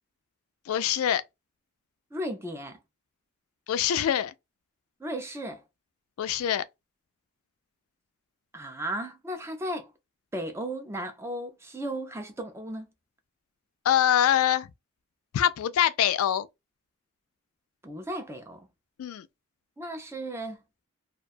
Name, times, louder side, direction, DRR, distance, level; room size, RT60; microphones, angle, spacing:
voice 1, 0.7-1.2 3.7-4.3 6.2-6.6 13.9-14.7 15.3-16.5 19.0-19.3, left 10 dB, 85° left, 0.3 m, -24 dB
voice 2, 2.1-2.8 5.0-5.6 8.5-9.9 10.3-12.8 17.8-18.7 19.8-20.6, right 1 dB, 10° right, 0.4 m, -35 dB
2.4 x 2.2 x 2.4 m
head